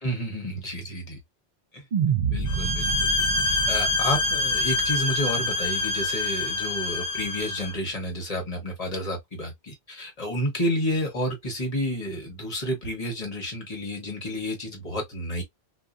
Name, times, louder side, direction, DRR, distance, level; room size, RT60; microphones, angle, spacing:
voice 1, 0.0-1.2 1.7-1.9 2.3-15.4, equal, 40° left, 1.2 m, -30 dB
sound 1, 1.9-6.3, right 6 dB, 55° right, 0.6 m, -29 dB
sound 2, 2.5-7.7, left 3 dB, 70° left, 0.8 m, -26 dB
2.7 x 2.4 x 2.3 m
omnidirectional pair, 1.1 m